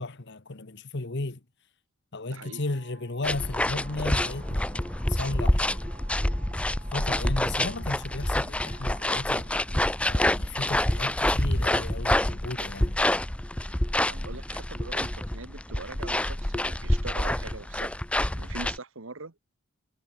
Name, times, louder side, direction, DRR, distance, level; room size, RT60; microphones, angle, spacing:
voice 1, 0.0-1.4 2.1-5.8 6.9-9.5 10.0-13.0, left 2 dB, 55° left, 1.3 m, -35 dB
voice 2, 2.3-2.6 14.0-17.9 18.4-19.3, right 3 dB, 60° right, 1.4 m, -42 dB
sound 1, 2.4-9.9, right 5 dB, 30° right, 7.5 m, -54 dB
sound 2, 3.2-18.8, left 1 dB, 5° left, 0.4 m, -27 dB
head